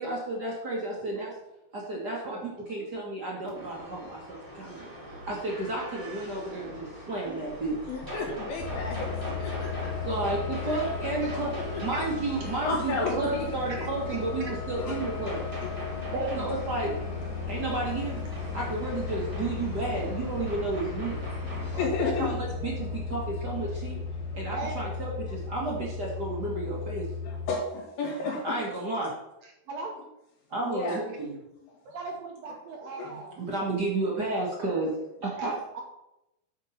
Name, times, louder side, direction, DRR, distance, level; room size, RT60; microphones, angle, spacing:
voice 1, 0.0-1.3 1.7-4.9 5.2-7.8 10.0-11.5 11.8-15.5 16.4-16.9 17.5-18.2 18.5-21.2 21.7-24.0 24.3-27.1 28.4-29.1 30.5-31.4 33.0-34.9 35.2-35.5, right 2 dB, 50° right, -3 dB, 1.2 m, -32 dB
sound 1, 3.5-21.9, equal, 15° right, 2.2 m, -43 dB
voice 2, 7.9-9.0 9.2-9.9 10.6-11.1 11.5-11.8 12.4-13.5 13.7-13.8 14.8-15.7 16.1-16.2 21.2-22.4 27.2-28.5 30.6-31.0 31.6-31.8 32.5-33.1, left 3 dB, 75° left, -3 dB, 3.5 m, -34 dB
sound 2, 8.6-27.5, left 4 dB, 50° left, 1.8 m, -35 dB
voice 3, 16.1-16.5 24.5-24.7 29.7-29.9 31.8-33.4 35.4-35.8, right 3 dB, 75° right, 1 dB, 1.5 m, -36 dB
8.5 x 5.3 x 5.8 m, 0.88 s
omnidirectional pair, 4.4 m